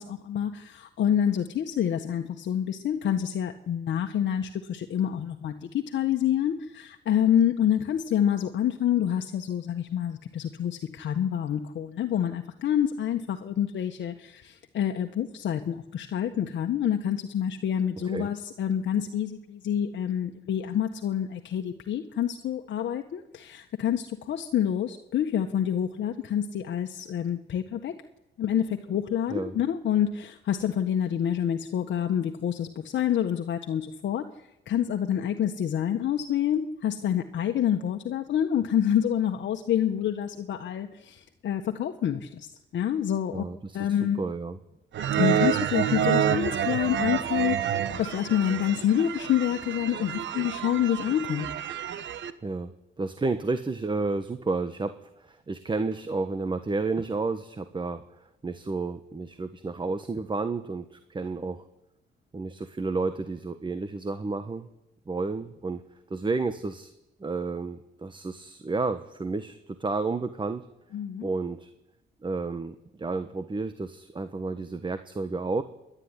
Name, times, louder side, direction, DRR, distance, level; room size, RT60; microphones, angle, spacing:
voice 1, 0.0-28.0 28.4-34.3 34.7-42.5 42.7-43.4 43.7-44.2 45.2-47.7 48.0-51.5 70.9-71.3, left 9 dB, 65° left, 4 dB, 1.5 m, -27 dB
voice 2, 43.3-44.6 52.4-52.7 53.0-58.0 58.4-61.6 62.3-64.7 65.1-65.8 66.1-66.9 67.2-70.7 71.2-71.7 72.2-75.6, right 3 dB, 25° right, 10 dB, 1.4 m, -31 dB
sound 1, 44.9-52.3, right 9 dB, 65° right, 1.5 m, -28 dB
27.5 x 11.5 x 9.9 m, 0.91 s
cardioid pair, 90°, 20 cm